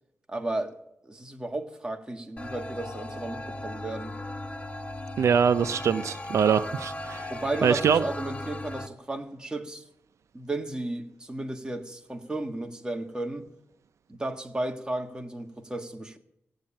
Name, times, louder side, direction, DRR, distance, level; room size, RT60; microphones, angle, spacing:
voice 1, 0.3-0.8 1.0-4.2 7.3-9.8 10.3-13.5 14.1-16.2, right 2 dB, 15° right, 1.8 m, -34 dB
sound 1, 2.4-8.9, left 1 dB, 25° left, 1.3 m, -37 dB
voice 2, 5.2-7.3 7.6-8.0, right 7 dB, 75° right, 0.5 m, -23 dB
17.0 x 8.8 x 8.7 m
cardioid pair, 90°, 5 cm